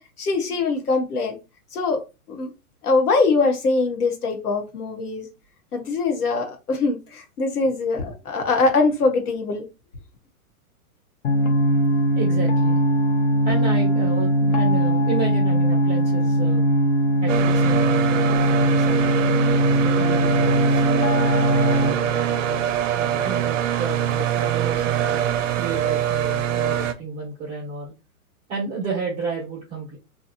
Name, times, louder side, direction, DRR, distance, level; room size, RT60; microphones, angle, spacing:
voice 1, 0.0-1.4 1.7-2.0 2.3-2.5 2.8-5.3 5.7-9.6, left 3 dB, 85° left, 1.1 m, -22 dB
sound 1, 11.2-21.9, right 1 dB, 45° left, 0.7 m, -20 dB
voice 2, 12.2-12.8 13.4-16.7 17.2-19.5 19.8-21.1 21.8-22.7 23.0-25.2 25.6-27.9 28.5-30.0, right 5 dB, 15° right, 0.7 m, -31 dB
sound 2, 17.3-26.9, right 10 dB, 60° right, 0.6 m, -24 dB
2.8 x 2.4 x 2.5 m
hypercardioid pair, 135°, 44 cm